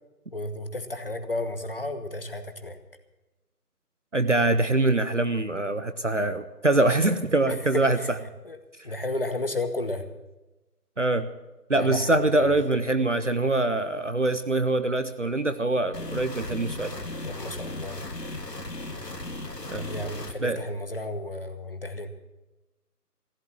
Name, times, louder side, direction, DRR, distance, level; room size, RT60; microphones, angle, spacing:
voice 1, 0.3-2.8 7.5-8.1 8.4-8.6 8.8-10.1 11.7-12.5 17.2-18.0 19.8-22.1, left 2 dB, 35° left, 8 dB, 1.1 m, -33 dB
voice 2, 4.1-8.0 11.0-11.3 11.7-16.9 19.7-19.8 20.4-20.6, right 2 dB, 50° right, 11 dB, 0.7 m, -24 dB
sound 1, 15.9-20.3, left 2 dB, 85° left, 2.0 m, -36 dB
15.0 x 10.5 x 7.2 m, 1.1 s
figure-of-eight pair, 165°, 48 cm